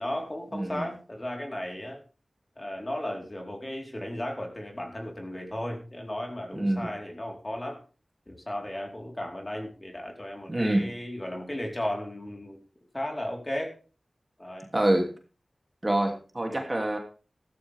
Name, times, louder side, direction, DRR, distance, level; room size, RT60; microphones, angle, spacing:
voice 1, 0.0-2.0 2.6-7.8 8.3-12.6 12.9-13.7 14.4-14.7 16.5-16.7, left 1 dB, 30° left, 1 dB, 4.4 m, -35 dB
voice 2, 0.5-0.9 6.5-6.9 10.5-10.9 14.7-15.1 15.8-17.0, right 1 dB, 30° right, 3 dB, 3.0 m, -26 dB
14.0 x 13.5 x 3.6 m, 0.36 s
wide cardioid pair, 55°, 0 cm